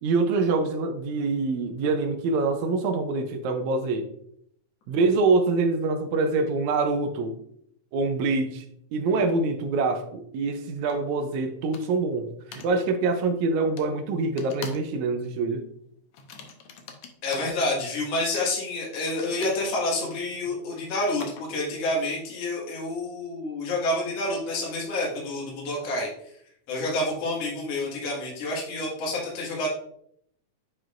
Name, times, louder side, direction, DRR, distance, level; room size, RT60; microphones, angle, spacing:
voice 1, 0.0-4.1 4.9-7.4 7.9-8.7 8.9-15.7, right 3 dB, 75° right, 6 dB, 1.9 m, -25 dB
Keyboard and Mouse, 10.9-11.0 11.7-12.1 12.5-12.7 13.8-13.9 14.4-14.9 15.2-15.5 16.1-17.5 18.9-21.7, left 4 dB, 70° left, 1.4 m, -43 dB
voice 2, 17.2-26.1 26.7-29.7, left 2 dB, 55° left, -3 dB, 2.7 m, -28 dB
9.0 x 4.8 x 2.5 m, 0.69 s
omnidirectional pair, 3.5 m